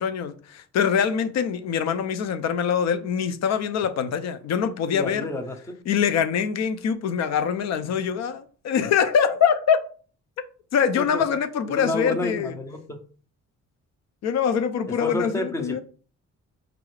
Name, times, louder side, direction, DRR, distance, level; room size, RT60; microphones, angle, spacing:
voice 1, 0.0-5.3 5.9-9.9 10.7-12.6 14.2-15.8, left 7 dB, 60° left, 0.5 m, -24 dB
voice 2, 4.9-5.8 11.1-11.2 11.7-13.0 15.0-15.8, left 1 dB, 10° left, 0.5 m, -30 dB
4.9 x 2.4 x 3.2 m
cardioid pair, 160°, 31 cm